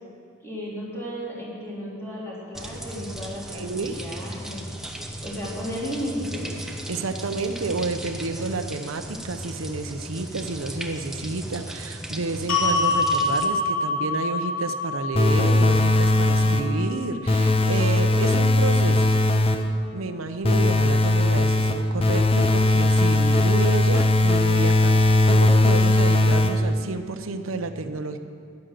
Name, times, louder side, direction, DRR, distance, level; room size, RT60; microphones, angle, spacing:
voice 1, 0.4-4.6 5.2-6.4, equal, 15° left, -6 dB, 3.5 m, -34 dB
sound 1, 2.5-13.5, equal, ahead, 0.9 m, -36 dB
voice 2, 3.5-4.0 6.9-19.2 19.4-19.6 19.9-28.2, right 3 dB, 80° right, 8 dB, 0.8 m, -30 dB
sound 2, 12.5-18.7, left 2 dB, 80° left, 2.7 m, -27 dB
sound 3, 15.2-16.8 17.3-19.8 20.4-26.8, left 1 dB, 30° left, 0.6 m, -19 dB
11.5 x 10.5 x 7.6 m, 2.2 s
head